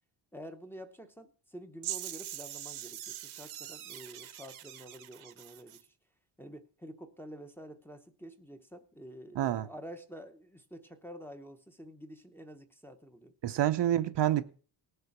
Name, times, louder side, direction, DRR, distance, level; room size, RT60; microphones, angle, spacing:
voice 1, 0.3-5.9 6.4-13.3, equal, 5° left, 0.8 m, -48 dB
sound 1, 1.8-5.8, right 11 dB, 75° right, 1.1 m, -42 dB
voice 2, 9.3-9.7 13.4-14.4, right 12 dB, 60° right, 0.8 m, -28 dB
18.0 x 6.8 x 6.0 m
wide cardioid pair, 175°, 48 cm